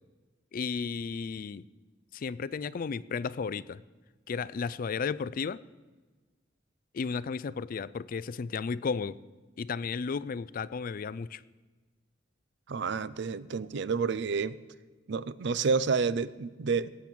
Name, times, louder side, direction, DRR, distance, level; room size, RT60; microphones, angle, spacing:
voice 1, 0.5-1.6 2.1-3.8 4.3-5.6 6.9-9.2 9.6-11.4, left 5 dB, 50° left, 19 dB, 0.4 m, -33 dB
voice 2, 12.7-14.6 15.1-16.9, right 5 dB, 65° right, 17 dB, 0.5 m, -29 dB
17.5 x 8.6 x 6.2 m, 1.3 s
head